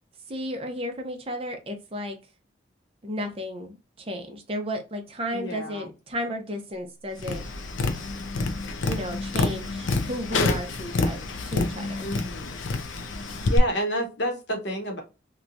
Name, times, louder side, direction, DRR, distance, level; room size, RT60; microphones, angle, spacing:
voice 1, 0.3-2.2 3.0-7.4 8.8-12.1, equal, 30° right, 0.6 m, -33 dB
voice 2, 5.3-5.9 12.0-12.6 13.5-15.0, equal, 65° left, 0.9 m, -30 dB
Tap, 7.2-13.6, left 3 dB, 85° left, 0.5 m, -28 dB
2.9 x 2.2 x 2.5 m
head